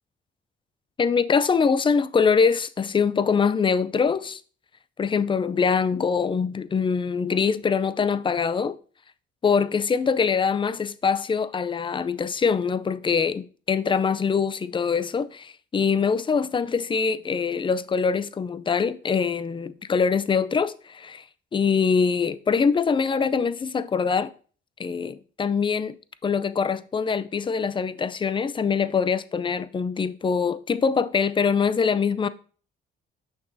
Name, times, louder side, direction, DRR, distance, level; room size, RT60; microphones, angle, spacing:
voice 1, 1.0-4.4 5.0-8.8 9.4-21.2 21.5-24.3 24.8-26.0 26.2-32.3, left 5 dB, 25° left, 0.4 m, -23 dB
6.0 x 5.9 x 2.6 m
cardioid pair, 90°, 20 cm